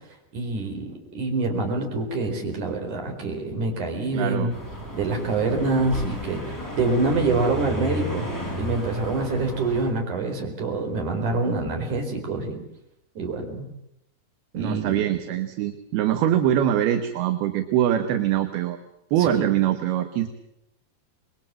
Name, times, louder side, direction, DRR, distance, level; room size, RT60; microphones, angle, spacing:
voice 1, 0.3-4.5 4.9-8.3 8.6-12.6 13.2-13.7 14.5-15.0 19.2-19.5, right 3 dB, 50° right, 3 dB, 5.7 m, -26 dB
voice 2, 4.1-4.5 14.5-18.8 19.1-20.3, right 11 dB, 75° right, 7 dB, 3.1 m, -23 dB
sound 1, 4.5-9.9, equal, 5° left, 5.8 m, -33 dB
27.0 x 21.5 x 7.6 m, 0.79 s
omnidirectional pair, 4.6 m